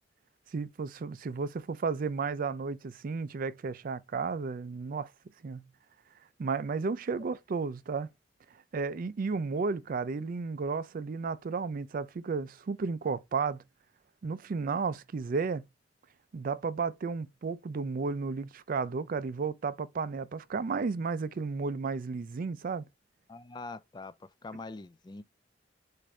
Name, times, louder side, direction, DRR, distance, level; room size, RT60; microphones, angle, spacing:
voice 1, 0.5-5.1 5.4-5.7 6.4-8.1 8.7-13.6 14.2-15.7 16.3-22.9, right 4 dB, 50° right, 0.4 m, -33 dB
voice 2, 23.3-24.1 24.4-25.2, left 3 dB, 25° left, 0.4 m, -43 dB
6.2 x 2.6 x 3.1 m
head